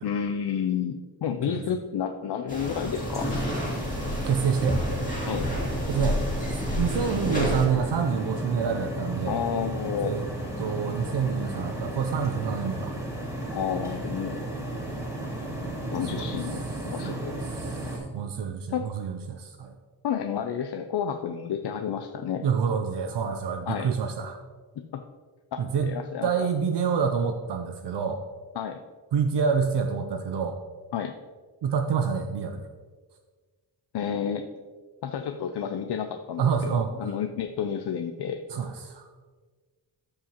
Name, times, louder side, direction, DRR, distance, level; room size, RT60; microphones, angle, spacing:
voice 1, 0.0-3.3 5.3-5.5 9.3-10.1 13.5-14.5 15.9-17.4 18.7-18.9 20.0-22.4 23.7-23.9 24.9-25.0 25.5-26.5 28.6-28.8 30.9-31.1 33.9-34.4 35.0-38.4, left 8 dB, 70° left, 6 dB, 0.6 m, -30 dB
sound 1, 2.5-7.7, left 1 dB, 20° left, 2.2 m, -30 dB
sound 2, 2.9-18.0, right 1 dB, 5° right, 2.1 m, -34 dB
voice 2, 4.2-4.8 5.9-6.2 6.8-9.4 10.0-10.3 10.6-12.9 16.0-16.5 17.0-19.7 22.4-24.4 25.6-25.9 26.2-28.2 29.1-30.6 31.6-32.7 36.4-36.9 38.5-39.0, right 6 dB, 80° right, 6 dB, 0.6 m, -27 dB
13.5 x 4.9 x 2.9 m, 1.4 s
wide cardioid pair, 90°, 41 cm